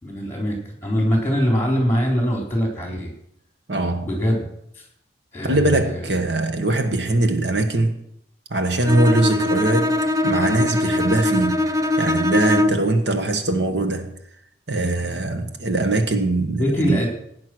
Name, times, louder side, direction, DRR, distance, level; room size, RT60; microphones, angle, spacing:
voice 1, 0.0-3.1 4.0-4.8 5.3-6.0 16.6-17.1, equal, 10° left, 3.9 m, -23 dB
voice 2, 3.7-4.1 5.4-8.0 8.5-9.9 10.2-11.7 12.0-14.1 14.7-17.0, right 2 dB, 70° right, 1.5 m, -21 dB
Bowed string instrument, 8.9-13.0, left 2 dB, 20° right, 0.7 m, -21 dB
17.0 x 9.7 x 6.2 m
head